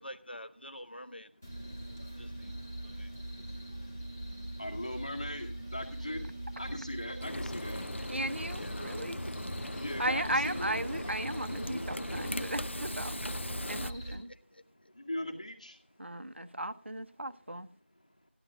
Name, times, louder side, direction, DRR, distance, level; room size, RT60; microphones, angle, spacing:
voice 1, 0.0-1.4 1.8-4.6 8.6-9.1 14.0-14.9, equal, 55° left, 12 dB, 0.9 m, -50 dB
sound 1, 1.4-14.2, right 1 dB, 10° left, 1.1 m, -42 dB
voice 2, 4.6-6.3 6.6-7.8 9.7-11.1 11.7-11.8 12.1-12.2 15.0-15.8, left 1 dB, 35° left, 3 dB, 2.0 m, -39 dB
Frying (food), 7.2-13.9, left 1 dB, 75° left, 0.5 m, -39 dB
voice 3, 8.1-9.2 9.5-13.2 13.7-14.3 16.0-17.7, right 1 dB, 75° right, 11 dB, 1.0 m, -36 dB
13.0 x 11.0 x 3.7 m, 0.42 s
figure-of-eight pair, 175°, 6 cm